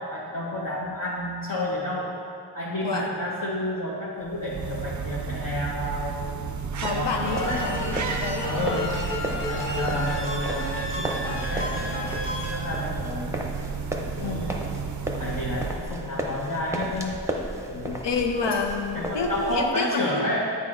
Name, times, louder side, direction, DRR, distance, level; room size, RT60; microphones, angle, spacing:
voice 1, 0.0-2.2 2.5-6.4 6.8-7.7 8.4-9.0 9.5-13.3 14.2-14.6 15.2-17.2 17.7-18.0 18.9-20.4, left 1 dB, 50° left, -7 dB, 0.9 m, -30 dB
sound 1, 4.2-16.1, right 6 dB, 45° right, 0.4 m, -32 dB
voice 2, 6.8-8.9 14.2-14.4 18.0-20.4, left 4 dB, 85° left, 4 dB, 0.7 m, -29 dB
sound 2, 6.8-19.7, equal, 5° right, 0.6 m, -35 dB
sound 3, 7.2-12.6, left 1 dB, 30° left, 1.1 m, -32 dB
8.6 x 4.1 x 3.7 m, 2.4 s
wide cardioid pair, 50°, 41 cm